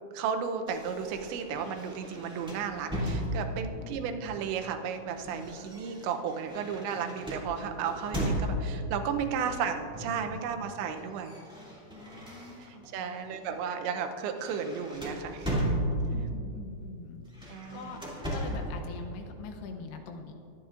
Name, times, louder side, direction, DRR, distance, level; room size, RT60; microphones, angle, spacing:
voice 1, 0.1-11.4 12.6-15.8 17.5-18.0, right 7 dB, 85° right, 6 dB, 3.0 m, -34 dB
sound 1, 0.7-3.8 4.7-8.9 9.9-10.3 10.6-12.9 13.4-13.6 13.9-16.3 17.2-18.8, equal, ahead, 1.0 m, -35 dB
voice 2, 3.7-4.1 9.4-9.6 10.3-10.6 12.0-13.5 16.0-20.3, left 4 dB, 75° left, 4 dB, 2.6 m, -45 dB
22.5 x 10.0 x 2.5 m, 2.6 s
omnidirectional pair, 5.1 m